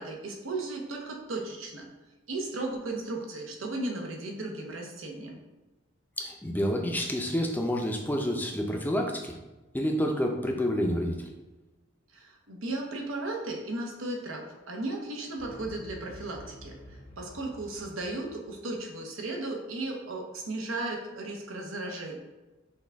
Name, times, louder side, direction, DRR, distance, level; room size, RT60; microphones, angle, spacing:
voice 1, 0.0-1.9 2.3-5.4 12.1-22.2, right 2 dB, 85° right, 1 dB, 0.9 m, -35 dB
voice 2, 6.2-9.3 9.7-11.3, equal, 10° left, 2 dB, 0.5 m, -29 dB
sound 1, 15.4-18.8, equal, 70° left, 0.8 m, -48 dB
6.2 x 2.3 x 3.4 m, 1.1 s
head